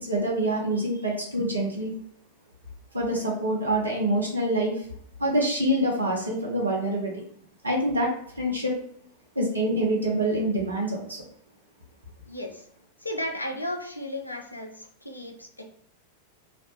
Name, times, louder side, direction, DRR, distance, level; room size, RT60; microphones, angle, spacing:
voice 1, 0.0-1.9 2.9-4.8 5.2-7.1 7.6-8.7 9.4-11.2, right 1 dB, 80° right, -2 dB, 0.6 m, -26 dB
voice 2, 12.2-12.6 13.0-15.7, left 1 dB, 85° left, 3 dB, 0.4 m, -34 dB
2.5 x 2.1 x 2.7 m, 0.65 s
figure-of-eight pair, 90°, 0 cm